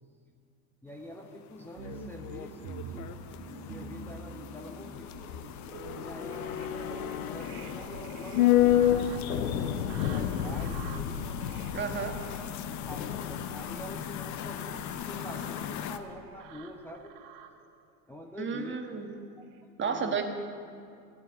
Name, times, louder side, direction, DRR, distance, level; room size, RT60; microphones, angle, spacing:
voice 1, 0.8-5.2 6.0-6.7 7.3-8.9 9.5-11.2 11.8-12.1 12.7-17.1 18.1-18.8 19.4-20.2, equal, 5° left, 0 dB, 1.0 m, -46 dB
sound 1, 0.9-16.0, left 9 dB, 40° left, 0.9 m, -41 dB
sound 2, 1.8-17.7 18.3-19.0 19.5-19.6, right 6 dB, 55° right, 1.4 m, -47 dB
sound 3, 5.0-15.4 15.7-15.8, left 11 dB, 70° left, 0.9 m, -30 dB
voice 2, 11.7-12.2 18.4-19.1 19.8-20.2, right 6 dB, 25° right, 4 dB, 1.5 m, -32 dB
13.0 x 8.9 x 9.2 m, 2.4 s
hypercardioid pair, 80°, 43 cm